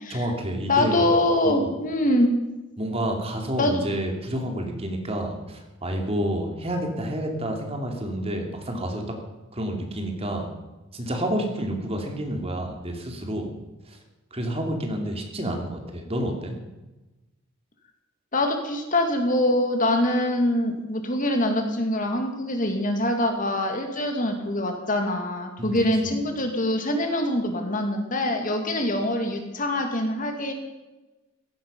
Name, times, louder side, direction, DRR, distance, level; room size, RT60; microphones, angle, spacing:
voice 1, 0.1-1.1 1.4-1.8 2.8-9.0 9.5-10.5 10.9-13.5 13.9-14.0 14.3-16.5 25.6-25.8 26.0-26.2, right 1 dB, 30° right, 3 dB, 2.7 m, -29 dB
voice 2, 0.7-2.3 3.6-3.8 18.3-30.5, left 1 dB, 40° left, 4 dB, 2.3 m, -24 dB
16.0 x 14.0 x 5.5 m, 1.1 s
head